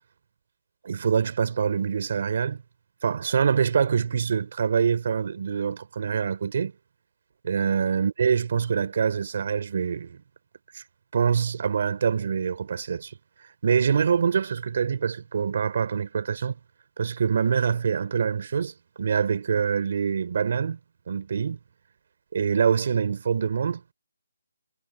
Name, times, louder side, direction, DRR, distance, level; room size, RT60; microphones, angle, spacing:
voice 1, 0.8-2.6 3.0-6.7 7.4-10.2 10.7-10.8 11.1-13.1 13.6-16.6 17.0-20.8 21.1-21.6 22.3-23.9, right 6 dB, 40° right, 4.9 m, -25 dB
hypercardioid pair, 180°, 0 cm